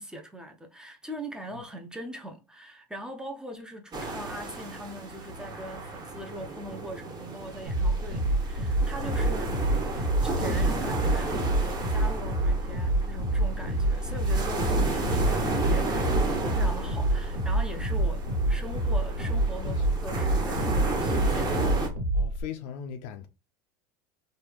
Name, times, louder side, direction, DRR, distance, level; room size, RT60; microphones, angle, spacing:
voice 1, 0.0-9.5 10.2-21.6, right 1 dB, 5° right, 0.4 m, -41 dB
sound 1, 3.9-21.9, right 2 dB, 35° right, 1.2 m, -33 dB
sound 2, 7.7-22.4, right 1 dB, 70° right, 1.5 m, -27 dB
voice 2, 14.7-15.8 17.9-18.0 19.6-19.8 22.1-23.3, left 8 dB, 60° left, 0.4 m, -40 dB
3.1 x 2.2 x 3.4 m
supercardioid pair, 125°, 11 cm